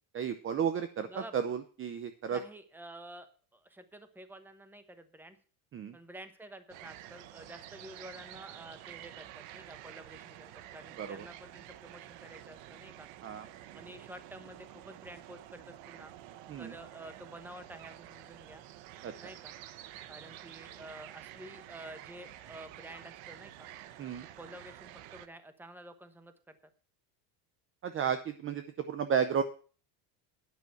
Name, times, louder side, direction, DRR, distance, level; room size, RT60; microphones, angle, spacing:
voice 1, 0.1-2.4 5.7-6.0 11.0-11.3 13.2-13.5 16.5-16.7 19.0-19.3 24.0-24.3 27.8-29.4, right 7 dB, 30° right, 10 dB, 0.6 m, -33 dB
voice 2, 2.3-5.4 5.9-13.1 13.7-16.1 16.6-18.6 19.2-19.6 20.1-23.7 24.4-26.6, right 1 dB, 5° right, 10 dB, 1.0 m, -50 dB
sound 1, 6.7-25.3, right 13 dB, 75° right, 1.0 m, -50 dB
9.8 x 6.0 x 7.7 m, 0.40 s
cardioid pair, 140°, 45 cm